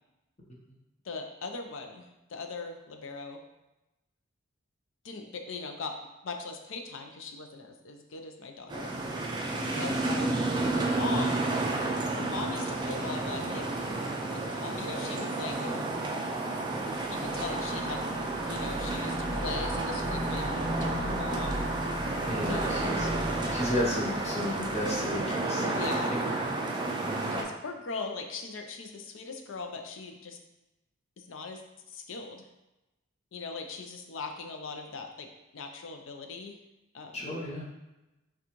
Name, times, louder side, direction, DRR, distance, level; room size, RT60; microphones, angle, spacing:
voice 1, 1.0-3.4 5.0-6.0 6.2-8.9 9.7-10.4 10.7-11.6 12.1-13.8 14.3-15.9 17.1-21.9 22.5-22.9 25.6-26.1 27.3-30.4 31.2-31.6 31.9-32.5 33.3-35.3 35.5-36.6 36.9-37.3, left 4 dB, 65° left, 4 dB, 0.5 m, -40 dB
sound 1, 8.7-27.4, right 2 dB, 20° right, 0.4 m, -31 dB
sound 2, 16.7-25.3, equal, 40° right, 0.8 m, -37 dB
voice 2, 22.2-23.1 23.5-25.9 37.1-37.7, left 1 dB, 30° left, -4 dB, 0.8 m, -33 dB
6.0 x 2.3 x 3.0 m, 0.99 s
head